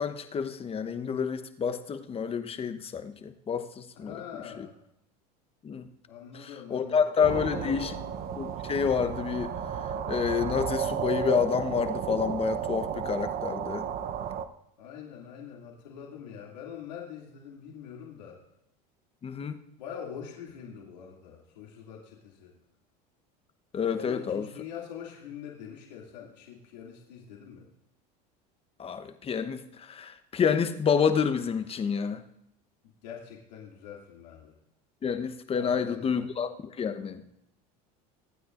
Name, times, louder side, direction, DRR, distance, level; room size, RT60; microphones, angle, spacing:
voice 1, 0.0-4.1 4.6-4.7 5.6-5.9 6.3-7.9 8.4-9.5 10.1-13.8 19.2-19.6 23.7-24.5 28.8-32.2 35.0-36.5 36.8-37.2, left 6 dB, 25° left, 9 dB, 1.0 m, -29 dB
voice 2, 3.9-4.7 6.1-7.9 14.8-18.4 19.8-22.5 23.9-27.7 33.0-34.5 35.5-36.3, left 8 dB, 90° left, -2 dB, 2.5 m, -44 dB
sound 1, 7.2-14.5, right 7 dB, 45° right, 0.8 m, -33 dB
23.5 x 9.3 x 2.6 m, 0.80 s
supercardioid pair, 105°, 21 cm